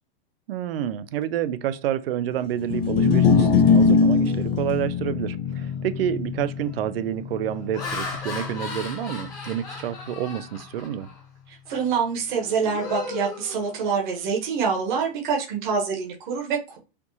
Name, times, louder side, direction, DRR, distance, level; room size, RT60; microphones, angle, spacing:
voice 1, 0.5-11.1, right 10 dB, 70° right, 0.5 m, -29 dB
sound 1, 2.6-9.0, left 5 dB, 70° left, 0.7 m, -22 dB
Laughter, 5.6-5.9 6.5-6.8 7.4-11.2 11.7-11.9 12.3-14.2, left 4 dB, 10° left, 0.8 m, -37 dB
voice 2, 11.7-16.8, right 5 dB, 50° right, 1.2 m, -26 dB
4.4 x 2.4 x 2.7 m
supercardioid pair, 175°, 30 cm